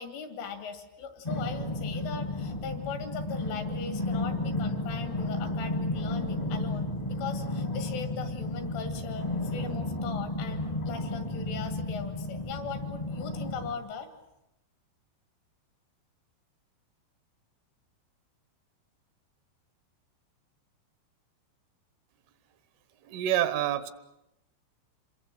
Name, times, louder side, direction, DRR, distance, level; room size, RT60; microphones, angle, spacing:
voice 1, 0.0-14.1, left 6 dB, 85° left, 7 dB, 5.0 m, -39 dB
sound 1, 1.2-13.7, left 2 dB, 30° left, 0.6 m, -33 dB
voice 2, 23.1-23.9, right 11 dB, 85° right, 13 dB, 3.7 m, -27 dB
27.5 x 22.0 x 7.7 m, 0.89 s
omnidirectional pair, 5.5 m